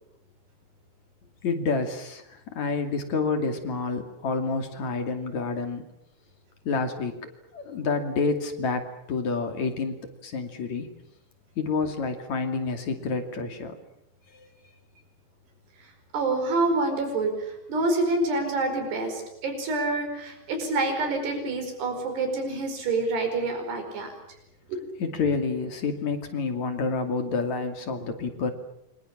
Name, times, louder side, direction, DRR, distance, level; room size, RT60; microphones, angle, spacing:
voice 1, 1.4-5.8 6.7-10.9 11.6-13.8 14.3-14.5 25.0-28.5, left 4 dB, 50° left, 5 dB, 3.6 m, -29 dB
voice 2, 16.1-24.1 24.7-24.8, right 2 dB, 90° right, 5 dB, 7.2 m, -27 dB
28.5 x 25.0 x 7.4 m, 0.79 s
omnidirectional pair, 4.6 m